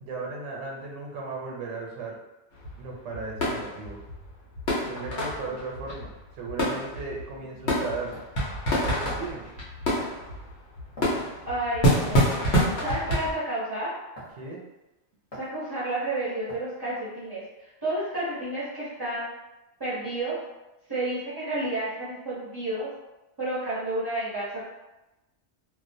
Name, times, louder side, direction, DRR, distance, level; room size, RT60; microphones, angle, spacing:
voice 1, 0.0-2.2 2.8-4.0 4.9-8.2 8.7-9.4 14.4-14.6, right 3 dB, 90° right, -1 dB, 0.9 m, -36 dB
sound 1, 2.5-13.3, equal, 75° left, 1.0 m, -28 dB
sound 2, 8.1-8.3 9.1-9.4 10.0-10.3 11.0-11.2 12.0-12.3 13.1-13.3 14.2-14.5 15.3-15.5 16.5-16.8, equal, 35° left, 0.8 m, -43 dB
voice 2, 11.4-12.3 12.7-13.9 15.4-19.3 19.8-20.4 20.9-22.9 23.4-24.6, right 1 dB, 30° right, -10 dB, 0.5 m, -31 dB
2.4 x 2.0 x 2.5 m, 1.0 s
omnidirectional pair, 1.2 m